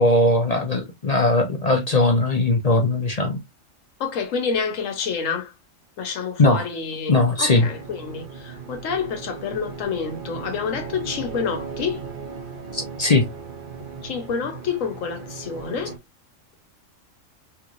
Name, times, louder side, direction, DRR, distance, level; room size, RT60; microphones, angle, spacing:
voice 1, 0.0-3.4 6.4-6.6 7.1-7.7 12.7-13.3, left 2 dB, 45° left, 0.6 m, -19 dB
voice 2, 4.0-5.5 6.0-12.1 14.0-16.0, left 6 dB, 80° left, 1.1 m, -28 dB
sound 1, 7.5-16.0, right 5 dB, 45° right, 0.9 m, -37 dB
3.2 x 3.0 x 2.4 m
omnidirectional pair, 1.3 m